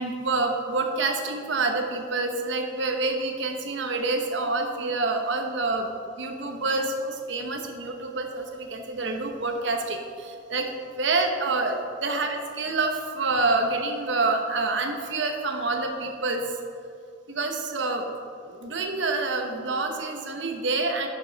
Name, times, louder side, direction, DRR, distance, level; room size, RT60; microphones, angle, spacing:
voice 1, 0.0-5.9 6.2-10.0 10.2-10.7 11.0-16.4 17.3-18.1 18.5-21.1, right 3 dB, 65° right, 4 dB, 1.0 m, -27 dB
11.0 x 6.3 x 4.0 m, 2.5 s
head